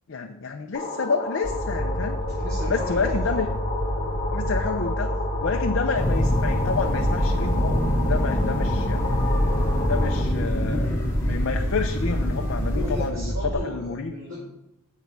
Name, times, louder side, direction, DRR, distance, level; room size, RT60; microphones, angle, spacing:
voice 1, 0.1-2.2 2.7-3.5 4.3-5.1 5.4-9.1 9.8-13.3 13.6-14.1, left 4 dB, 60° left, 4 dB, 0.5 m, -29 dB
sound 1, 0.7-10.2, left 2 dB, 30° left, 1.8 m, -32 dB
sound 2, 1.4-13.5, equal, 5° right, 2.0 m, -29 dB
voice 2, 2.3-3.4 12.0-12.1 12.7-14.5, equal, 60° right, -8 dB, 2.9 m, -35 dB
sound 3, 5.9-13.1, equal, 15° left, 2.6 m, -25 dB
7.4 x 4.7 x 6.7 m, 0.88 s
head